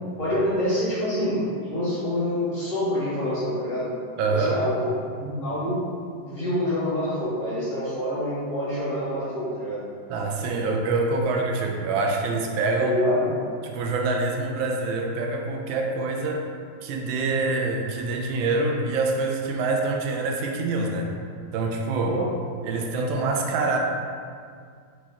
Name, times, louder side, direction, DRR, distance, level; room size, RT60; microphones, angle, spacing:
voice 1, 0.2-1.4 1.7-3.9 4.3-5.8 6.2-9.8 12.8-13.3 22.1-22.3, left 1 dB, 50° left, -10 dB, 1.2 m, -26 dB
voice 2, 4.2-4.6 10.1-13.0 13.6-16.4 16.8-21.1 21.5-22.2 22.6-23.8, right 3 dB, 85° right, 2 dB, 1.4 m, -25 dB
4.0 x 3.2 x 3.5 m, 2.1 s
omnidirectional pair, 2.1 m